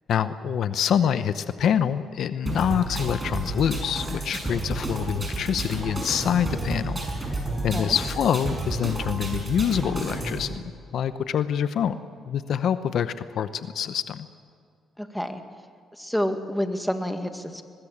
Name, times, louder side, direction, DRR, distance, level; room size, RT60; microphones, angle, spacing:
voice 1, 0.1-7.0 7.6-10.6 10.9-12.0 12.2-14.3, left 8 dB, 70° left, 12 dB, 0.8 m, -26 dB
sound 1, 2.5-10.5, right 2 dB, 20° right, 6.7 m, -31 dB
voice 2, 15.0-15.4 16.0-17.6, equal, ahead, 6 dB, 1.9 m, -28 dB
23.5 x 20.0 x 7.4 m, 2.2 s
cardioid pair, 90°, 0 cm